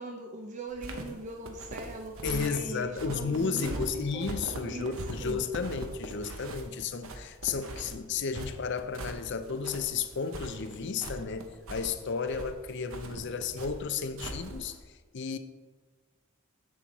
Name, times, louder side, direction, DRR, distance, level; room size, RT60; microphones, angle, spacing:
voice 1, 0.0-4.9 5.2-5.4, right 2 dB, 35° right, 0.6 m, -41 dB
sound 1, 0.7-14.8, right 2 dB, 70° right, 1.0 m, -41 dB
voice 2, 2.2-14.8 15.1-15.4, left 5 dB, 55° left, 0.5 m, -33 dB
7.5 x 7.2 x 4.1 m
head